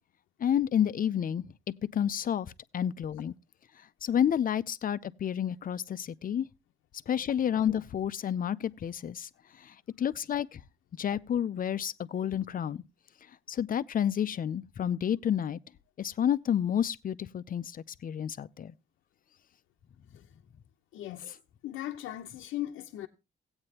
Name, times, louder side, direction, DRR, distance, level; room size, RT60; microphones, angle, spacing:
voice 1, 0.4-1.4 1.9-3.3 4.0-6.5 7.1-9.3 9.6-10.6 11.0-12.8 13.5-15.6 16.0-18.7, left 9 dB, 45° left, 0.6 m, -30 dB
voice 2, 20.9-23.1, left 13 dB, 85° left, 0.8 m, -38 dB
16.0 x 8.8 x 2.8 m
cardioid pair, 90°, 20 cm